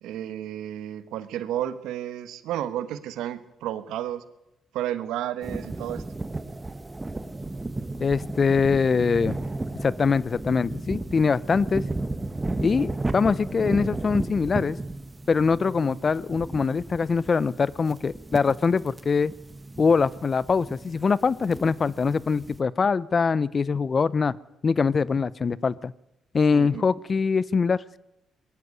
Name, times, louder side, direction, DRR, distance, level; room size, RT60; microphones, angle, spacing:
voice 1, 0.0-4.2 4.7-6.0 26.5-26.8, right 11 dB, 90° right, 13 dB, 1.2 m, -32 dB
sound 1, 5.4-22.6, right 2 dB, 15° right, 1.3 m, -34 dB
voice 2, 8.0-9.4 9.7-11.8 12.6-14.8 15.3-19.3 19.8-24.4 24.6-25.9 26.3-28.0, left 5 dB, 40° left, 21 dB, 0.7 m, -23 dB
21.0 x 14.0 x 9.7 m, 0.92 s
cardioid pair, 90°, 0 cm